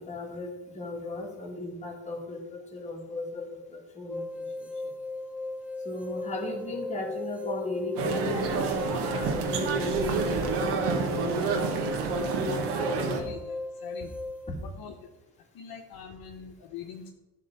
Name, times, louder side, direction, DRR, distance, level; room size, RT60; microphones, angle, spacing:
voice 1, 0.0-4.7 5.8-11.8 13.2-13.3 14.5-14.6, left 2 dB, 15° left, -2 dB, 2.4 m, -37 dB
sound 1, 4.1-14.5, left 2 dB, 5° right, 0.8 m, -37 dB
sound 2, 8.0-13.2, right 4 dB, 85° right, 1.4 m, -28 dB
voice 2, 8.1-8.4 12.9-14.1 14.6-14.9 15.6-17.1, left 7 dB, 65° left, 3 dB, 1.0 m, -42 dB
11.5 x 3.9 x 6.7 m, 1.0 s
cardioid pair, 105°, 40 cm